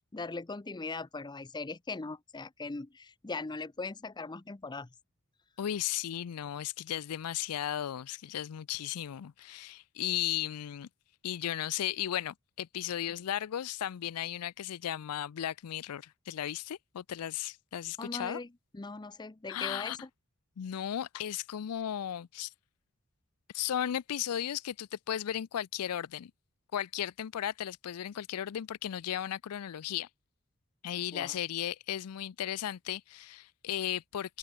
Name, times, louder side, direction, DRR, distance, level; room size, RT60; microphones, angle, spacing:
voice 1, 0.1-4.9 18.0-18.5 18.7-20.1 31.1-31.3, left 3 dB, 20° left, 0.6 m, -40 dB
voice 2, 5.6-10.9 11.2-18.4 19.5-20.0 20.6-22.5 23.5-26.3 26.7-30.1 30.8-34.4, left 10 dB, 85° left, 0.4 m, -35 dB
open air
head